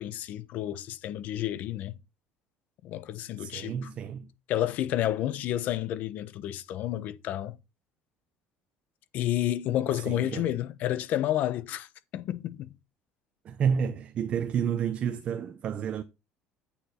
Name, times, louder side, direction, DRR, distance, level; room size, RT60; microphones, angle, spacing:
voice 1, 0.0-2.0 2.8-3.9 4.5-7.6 9.1-11.9 12.1-12.7, left 12 dB, 55° left, 0.9 m, -30 dB
voice 2, 3.4-4.3 9.9-10.5 13.4-16.0, right 7 dB, 40° right, 0.8 m, -30 dB
8.6 x 7.1 x 4.3 m
cardioid pair, 150°, 3 cm